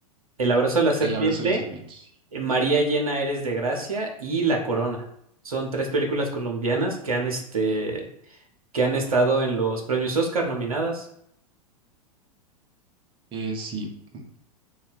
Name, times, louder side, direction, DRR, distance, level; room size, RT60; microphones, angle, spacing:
voice 1, 0.4-1.6 2.3-5.0 5.4-8.0 8.7-11.1, right 3 dB, 70° right, 2 dB, 0.8 m, -24 dB
voice 2, 1.0-2.1 6.7-6.9 13.3-14.4, right 3 dB, 25° right, 3 dB, 0.8 m, -33 dB
3.0 x 2.4 x 4.1 m, 0.71 s
figure-of-eight pair, 95°, 19 cm